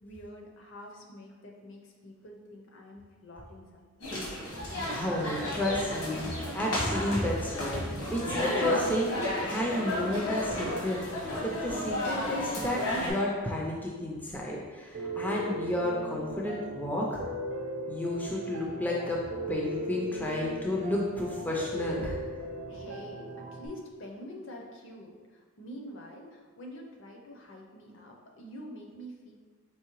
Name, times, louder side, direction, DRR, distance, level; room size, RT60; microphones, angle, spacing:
voice 1, 0.0-4.1 14.1-14.2 22.7-29.3, equal, 55° left, 1 dB, 0.6 m, -46 dB
sound 1, 4.0-13.1, left 1 dB, 75° left, 1.2 m, -33 dB
voice 2, 4.9-9.1 9.4-11.0 11.4-17.2 17.9-19.2 19.5-22.2, left 1 dB, 10° left, -3 dB, 0.3 m, -31 dB
Piano, 14.9-23.7, equal, 55° right, 0.6 m, -37 dB
4.6 x 3.1 x 3.0 m, 1.5 s
head